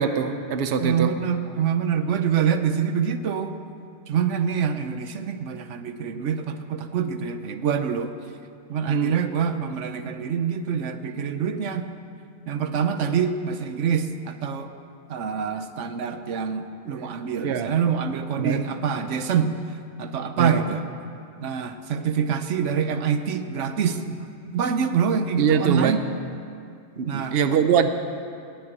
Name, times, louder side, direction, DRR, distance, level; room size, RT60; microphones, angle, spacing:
voice 1, 0.0-1.1 8.9-9.2 17.4-17.7 18.4-18.6 20.4-20.7 25.4-26.0 27.0-27.9, right 7 dB, 60° right, 9 dB, 0.9 m, -23 dB
voice 2, 0.8-3.6 4.1-8.1 8.7-11.9 12.5-14.7 15.1-19.5 20.0-20.8 21.4-24.3 24.5-26.0 27.1-27.4, right 7 dB, 85° right, 9 dB, 1.1 m, -25 dB
18.5 x 6.9 x 8.9 m, 2.4 s
omnidirectional pair, 1.2 m